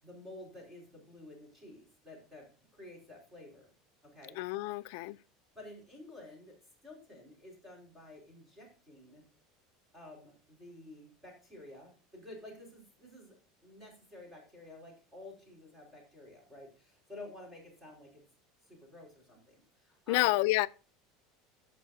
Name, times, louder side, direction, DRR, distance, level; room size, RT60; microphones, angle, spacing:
voice 1, 0.0-2.5 2.7-3.7 4.0-4.4 5.5-6.5 6.8-9.2 9.9-13.4 13.6-18.2 18.7-20.5, left 2 dB, 10° right, 4.9 m, -51 dB
voice 2, 4.4-5.2 20.1-20.7, left 20 dB, 60° left, 0.5 m, -29 dB
17.5 x 6.9 x 2.7 m
cardioid pair, 170°, 0 cm